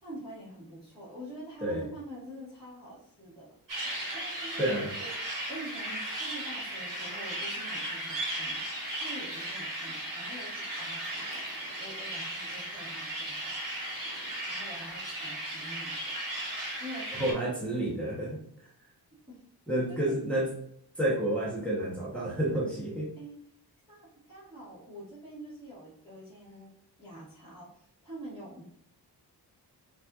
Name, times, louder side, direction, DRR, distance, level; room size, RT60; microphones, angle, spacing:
voice 1, 0.0-3.6 4.1-4.6 5.0-5.1 5.5-8.6 8.9-11.4 11.8-14.2 14.5-16.1 16.8-17.5 18.0-18.1 19.3-19.4 19.9-20.2 23.1-23.4 23.9-26.7 27.0-28.6, right 1 dB, 15° right, -11 dB, 1.2 m, -46 dB
Tortugas Birds - Bush Key, 3.7-17.3, right 1 dB, 50° right, 1.3 m, -36 dB
voice 2, 4.6-4.9 17.2-18.4 19.7-20.5 21.0-23.1, right 1 dB, 5° left, -5 dB, 0.8 m, -30 dB
5.2 x 2.6 x 2.3 m, 0.70 s
wide cardioid pair, 180°, 41 cm